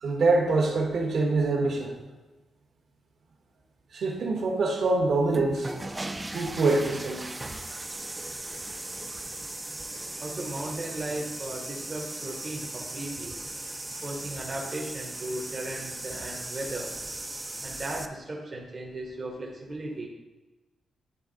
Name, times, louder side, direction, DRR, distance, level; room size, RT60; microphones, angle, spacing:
voice 1, 0.0-1.9 3.9-5.7 6.3-7.3 9.9-10.0, right 3 dB, 65° right, 1 dB, 1.2 m, -25 dB
sound 1, 5.2-18.1, right 2 dB, 15° right, 0.3 m, -38 dB
voice 2, 10.2-13.4 14.0-16.9 17.6-20.1, right 2 dB, 30° right, -1 dB, 0.8 m, -36 dB
9.7 x 3.5 x 3.8 m, 1.1 s
wide cardioid pair, 170°, 0 cm